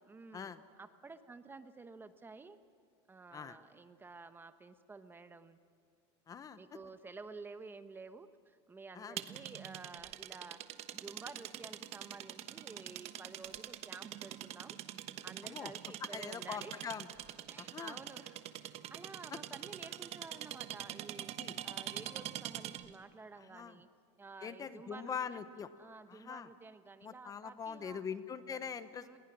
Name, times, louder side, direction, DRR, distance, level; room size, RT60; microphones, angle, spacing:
voice 1, 0.1-2.6 3.1-5.6 6.6-10.6 10.9-14.8 15.2-16.9 17.5-21.3 21.6-23.9 24.2-25.5 25.8-28.0 29.0-29.2, right 4 dB, 15° right, 11 dB, 1.0 m, -52 dB
voice 2, 6.3-6.6 8.9-9.2 15.4-15.7 16.1-17.1 17.6-18.0 21.4-21.6 23.4-23.8 24.4-25.7 26.1-26.5 27.0-29.2, left 7 dB, 25° left, 12 dB, 0.9 m, -43 dB
sound 1, 9.2-22.9, right 12 dB, 45° right, 1.2 m, -44 dB
30.0 x 21.0 x 6.2 m, 2.3 s
supercardioid pair, 140°, 15 cm